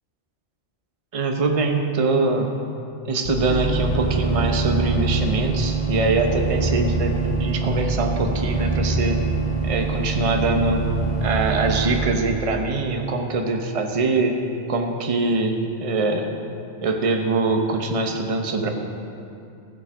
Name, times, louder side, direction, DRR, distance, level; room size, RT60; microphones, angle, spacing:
voice 1, 1.1-2.5 3.1-7.1 7.4-9.2 9.6-10.8 11.2-14.4 14.7-16.3 16.8-18.7, right 3 dB, 35° right, 3 dB, 0.9 m, -23 dB
sound 1, 3.2-12.0, right 3 dB, 55° left, 3.3 m, -24 dB
15.5 x 7.9 x 5.1 m, 2.6 s
omnidirectional pair, 1.2 m